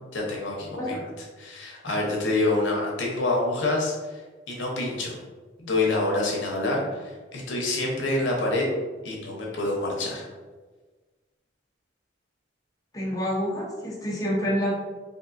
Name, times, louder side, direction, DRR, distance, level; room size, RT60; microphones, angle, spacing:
voice 1, 0.1-1.0 1.4-4.2 4.5-5.2 5.6-8.7 9.0-10.3, left 2 dB, 70° left, -2 dB, 0.8 m, -27 dB
voice 2, 0.7-1.0 12.9-14.8, equal, 20° left, -5 dB, 0.6 m, -27 dB
3.6 x 2.5 x 2.5 m, 1.3 s
head